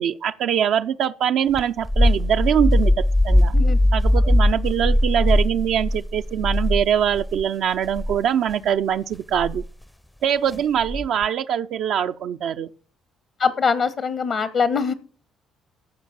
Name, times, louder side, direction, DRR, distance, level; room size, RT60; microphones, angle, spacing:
voice 1, 0.0-3.5 3.9-9.6 10.2-12.7, right 9 dB, 70° right, 0.4 m, -23 dB
sound 1, 1.5-7.4 7.9-8.2 9.4-9.7 10.8-11.2, left 1 dB, 10° left, 0.6 m, -20 dB
voice 2, 13.4-14.9, left 5 dB, 60° left, 1.4 m, -22 dB
14.5 x 5.1 x 7.3 m
hypercardioid pair, 55°, 0 cm